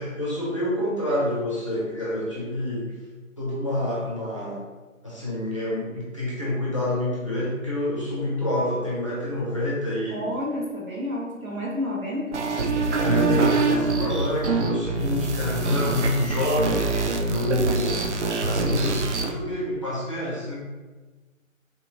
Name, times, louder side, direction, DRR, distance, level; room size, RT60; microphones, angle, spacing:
voice 1, 0.0-3.0 3.4-4.7 5.0-10.3 13.0-16.8 17.2-18.0 18.4-20.6, left 1 dB, 25° left, -8 dB, 0.6 m, -27 dB
voice 2, 10.1-12.5, left 1 dB, 80° right, -5 dB, 1.5 m, -30 dB
sound 1, 12.3-19.3, right 4 dB, 60° right, 0.5 m, -25 dB
4.3 x 2.6 x 2.5 m, 1.3 s
figure-of-eight pair, 150°, 41 cm